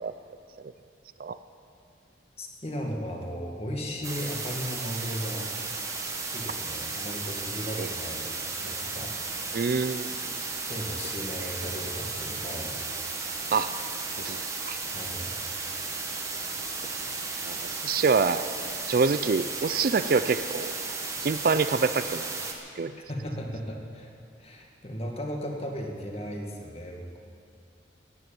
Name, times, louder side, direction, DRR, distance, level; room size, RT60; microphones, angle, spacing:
voice 1, 2.4-5.5 6.2-8.3 8.6-9.1 10.6-12.8 14.9-15.3 23.0-24.1 24.4-27.2, equal, 35° left, 1 dB, 1.9 m, -36 dB
sound 1, 4.0-22.5, right 4 dB, 15° right, 1.3 m, -34 dB
voice 2, 9.5-10.1 13.5-13.7 14.2-14.8 17.5-17.6 17.8-18.4 18.9-20.7 21.2-22.3 22.8-23.0, right 4 dB, 50° right, 12 dB, 0.4 m, -26 dB
14.5 x 9.6 x 9.0 m, 2.4 s
head